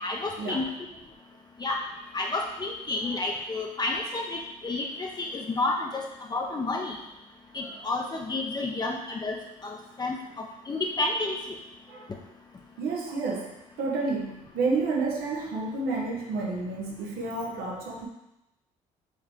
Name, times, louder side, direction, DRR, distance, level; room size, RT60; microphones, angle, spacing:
voice 1, 0.0-0.6 1.6-1.8 2.1-6.1 6.3-7.0 7.5-9.4 9.6-10.2 10.7-11.4, left 2 dB, 25° left, 0 dB, 0.6 m, -30 dB
voice 2, 12.8-18.1, right 3 dB, 85° right, -2 dB, 1.0 m, -30 dB
4.6 x 3.2 x 3.6 m, 0.90 s
cardioid pair, 80°, 15 cm